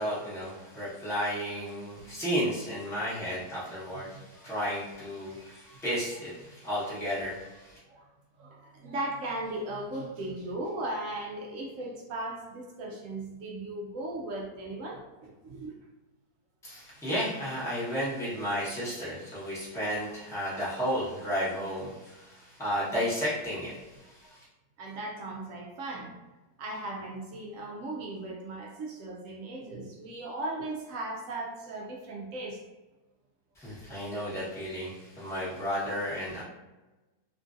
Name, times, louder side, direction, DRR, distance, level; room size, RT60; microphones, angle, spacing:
voice 1, 0.0-7.8 16.6-24.4 33.5-36.4, equal, ahead, -9 dB, 0.7 m, -33 dB
voice 2, 8.4-15.7 24.8-26.1 26.6-32.6, right 2 dB, 75° right, -1 dB, 0.7 m, -37 dB
2.9 x 2.5 x 2.4 m, 1.1 s
omnidirectional pair, 1.8 m